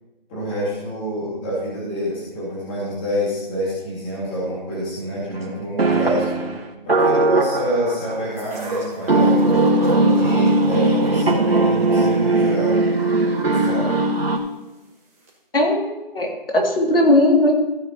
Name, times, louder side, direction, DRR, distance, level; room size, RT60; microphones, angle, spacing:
voice 1, 0.3-6.3 6.8-9.4 10.0-12.8 13.4-14.0, equal, 10° left, -8 dB, 2.2 m, -27 dB
sound 1, 5.3-5.4 5.8-8.4 9.1-14.4, right 2 dB, 85° right, 1.9 m, -19 dB
sound 2, 8.4-14.4 15.3-15.4, right 1 dB, 15° right, 1.5 m, -33 dB
voice 2, 15.5-17.5, left 1 dB, 70° left, 1 dB, 2.5 m, -18 dB
15.0 x 8.5 x 3.0 m, 1.0 s
figure-of-eight pair, 170°, 29 cm